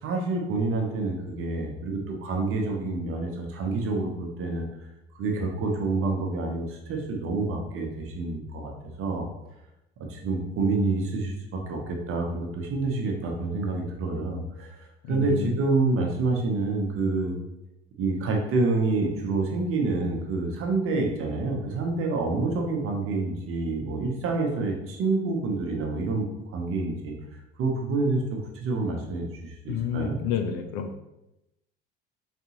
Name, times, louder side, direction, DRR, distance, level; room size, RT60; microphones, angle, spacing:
voice 1, 0.0-4.7 5.2-8.7 9.0-9.3 10.1-14.8 15.1-17.4 18.0-27.1 27.6-30.2, right 3 dB, 40° right, 1 dB, 0.9 m, -27 dB
voice 2, 15.0-15.5 29.7-30.9, left 8 dB, 50° left, 6 dB, 0.5 m, -29 dB
4.1 x 3.5 x 2.9 m, 0.89 s
figure-of-eight pair, 60°, 32 cm